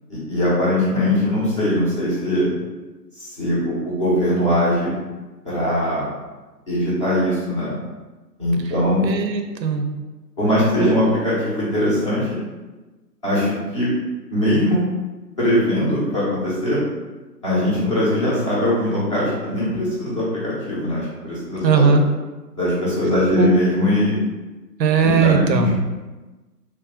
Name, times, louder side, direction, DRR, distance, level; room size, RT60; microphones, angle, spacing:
voice 1, 0.1-2.5 3.1-4.9 5.4-6.1 6.7-7.7 8.4-9.0 10.4-12.4 13.2-13.9 14.3-14.8 15.4-16.8 17.4-22.0 22.5-24.2 25.0-25.8, left 1 dB, 20° left, -9 dB, 0.7 m, -21 dB
voice 2, 9.0-9.9 10.8-11.1 21.6-22.0 23.4-23.5 24.8-25.7, right 5 dB, 80° right, 5 dB, 0.7 m, -18 dB
3.2 x 2.3 x 3.5 m, 1.2 s
hypercardioid pair, 150°, 50 cm